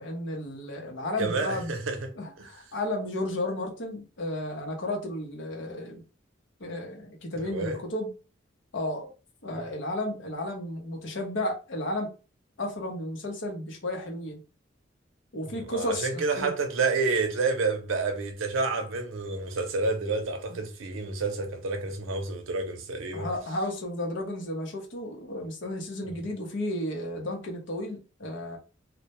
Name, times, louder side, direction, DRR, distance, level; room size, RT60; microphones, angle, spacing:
voice 1, 0.0-1.7 2.1-6.0 6.6-8.1 8.7-9.1 9.4-12.1 12.6-14.4 15.3-16.5 20.5-20.6 23.1-28.6, left 1 dB, 65° left, 0.7 m, -33 dB
voice 2, 1.2-2.0 2.4-2.5 7.5-7.8 15.5-23.3 26.0-26.2, right 4 dB, 85° right, 0.6 m, -29 dB
2.1 x 2.1 x 2.8 m
head